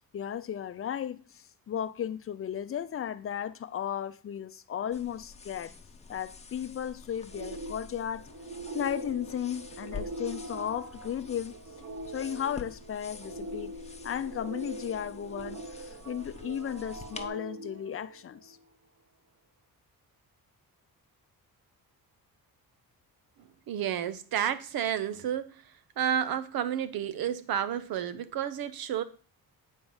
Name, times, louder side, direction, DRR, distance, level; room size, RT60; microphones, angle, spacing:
voice 1, 0.1-5.7 6.1-8.3 8.7-11.5 12.1-13.7 14.0-18.6, left 9 dB, 40° left, 0.6 m, -35 dB
sound 1, 4.9-17.3, left 5 dB, 20° left, 0.9 m, -48 dB
sound 2, 7.3-18.6, right 2 dB, 45° right, 1.0 m, -42 dB
voice 2, 23.7-25.5 26.0-29.0, right 9 dB, 80° right, 0.9 m, -31 dB
9.0 x 4.5 x 7.2 m
cardioid pair, 150°, 35 cm